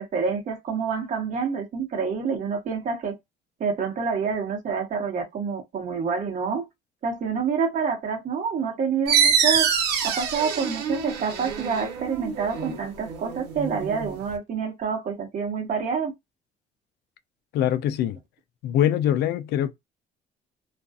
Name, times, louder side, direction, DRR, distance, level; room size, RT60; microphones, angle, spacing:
voice 1, 0.0-3.1 3.6-6.6 7.0-9.7 10.0-16.1, right 5 dB, 50° right, 1.1 m, -27 dB
sound 1, 9.1-14.3, right 7 dB, 85° right, 0.9 m, -25 dB
voice 2, 17.5-18.2 18.6-19.7, left 11 dB, 75° left, 0.4 m, -23 dB
2.5 x 2.3 x 2.3 m
cardioid pair, 110°, 17 cm